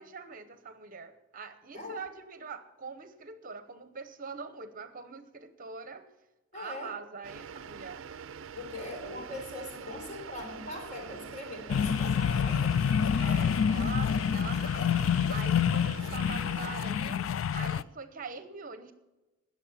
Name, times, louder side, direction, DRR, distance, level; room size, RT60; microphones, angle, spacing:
voice 1, 0.0-6.1 6.5-8.0 13.2-15.0 15.3-17.2 17.5-18.9, right 5 dB, 40° right, 10 dB, 0.9 m, -43 dB
voice 2, 6.5-6.9 8.6-12.7, left 1 dB, 35° left, 1 dB, 4.0 m, -41 dB
sound 1, 7.2-16.9, right 6 dB, 70° right, 0.5 m, -45 dB
sound 2, 11.7-17.8, left 7 dB, 75° left, 0.4 m, -27 dB
19.0 x 7.1 x 5.8 m, 1.1 s
head